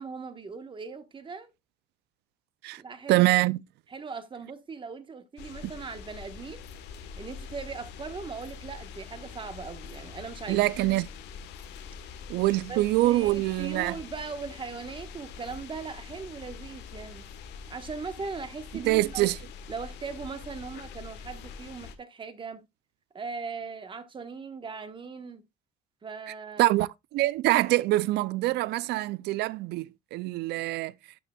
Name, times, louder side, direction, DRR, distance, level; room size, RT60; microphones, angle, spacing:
voice 1, 0.0-1.5 2.8-3.3 3.9-6.6 7.2-10.7 12.7-17.3 17.7-19.3 19.7-22.7 23.1-25.4 26.0-26.7, right 5 dB, 30° right, 1.2 m, -39 dB
voice 2, 3.1-3.6 10.5-11.1 12.3-14.0 18.9-19.4 26.6-30.9, right 18 dB, 80° right, 0.4 m, -25 dB
sound 1, 5.4-22.0, left 6 dB, 85° left, 1.2 m, -44 dB
12.0 x 5.9 x 2.3 m
cardioid pair, 110°, 17 cm